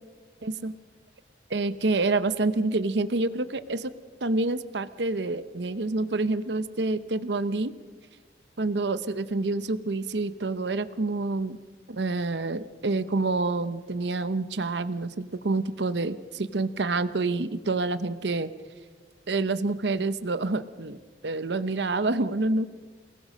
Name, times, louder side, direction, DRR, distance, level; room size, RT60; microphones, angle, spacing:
voice 1, 0.4-0.7 1.5-3.9 4.2-7.7 8.6-11.6 11.9-18.5 19.3-21.0 21.2-22.7, right 3 dB, 80° right, 13 dB, 0.8 m, -27 dB
28.5 x 19.5 x 6.4 m, 1.4 s
head